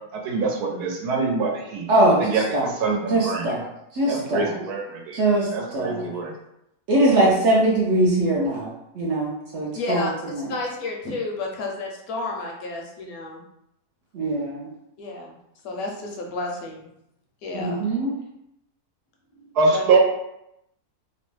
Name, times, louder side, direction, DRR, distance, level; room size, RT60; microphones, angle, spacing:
voice 1, 0.1-1.8 2.2-3.5 4.1-5.2 5.5-6.3 19.6-20.0, right 4 dB, 80° right, 0 dB, 1.2 m, -24 dB
voice 2, 1.9-2.7 3.1-3.6 3.9-4.6 5.1-6.1 6.9-10.5 14.1-14.7 17.5-18.1, right 1 dB, 65° right, -4 dB, 0.8 m, -22 dB
voice 3, 9.7-10.1 10.5-13.4 15.0-15.4 15.6-16.9 17.4-18.0 19.4-20.0, left 2 dB, 75° left, 0 dB, 1.0 m, -31 dB
2.9 x 2.0 x 3.1 m, 0.82 s
omnidirectional pair, 1.7 m